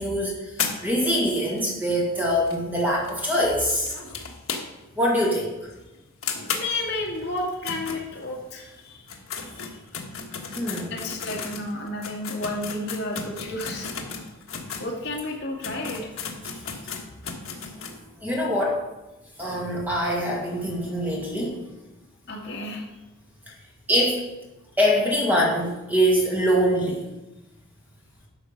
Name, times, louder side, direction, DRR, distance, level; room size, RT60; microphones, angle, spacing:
voice 1, 0.0-3.9 5.0-5.5 10.5-11.0 14.0-14.2 17.8-17.9 18.2-18.8 19.4-21.6 23.9-24.3 24.8-27.0, equal, 10° right, -3 dB, 1.9 m, -24 dB
sound 1, 0.6-5.0 5.3-5.4 5.7-5.8 6.2-8.6 9.0-14.9 15.3-15.4 15.6-18.0, left 6 dB, 65° left, 1.4 m, -35 dB
voice 2, 6.4-9.0 9.4-9.7 10.9-13.9 14.8-16.0 22.3-22.8, left 2 dB, 50° left, -1 dB, 2.0 m, -31 dB
12.0 x 6.4 x 5.2 m, 1.0 s
head